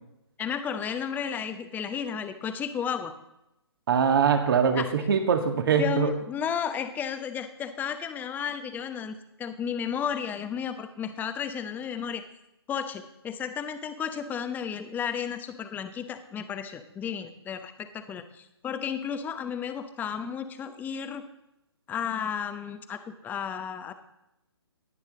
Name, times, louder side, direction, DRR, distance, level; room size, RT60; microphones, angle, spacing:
voice 1, 0.4-3.1 4.8-4.9 5.8-12.2 12.7-21.2 21.9-23.9, left 7 dB, 10° left, 9 dB, 0.9 m, -33 dB
voice 2, 3.9-6.1, right 6 dB, 55° right, 5 dB, 1.9 m, -23 dB
18.0 x 10.5 x 3.8 m, 0.86 s
figure-of-eight pair, 135°, 14 cm